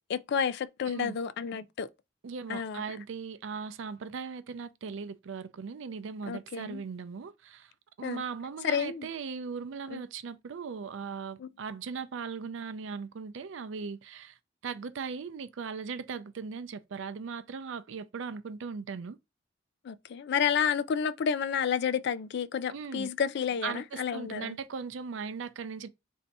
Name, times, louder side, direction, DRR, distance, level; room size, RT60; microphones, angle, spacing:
voice 1, 0.1-1.9 2.5-2.8 6.3-6.8 8.0-8.2 8.6-9.1 9.9-10.0 11.4-11.5 19.8-24.6, left 7 dB, 60° left, 0.3 m, -30 dB
voice 2, 0.9-1.2 2.2-7.7 8.0-14.4 14.6-19.2 22.7-23.1 23.6-25.9, right 5 dB, 70° right, 0.4 m, -38 dB
3.3 x 2.7 x 4.0 m
head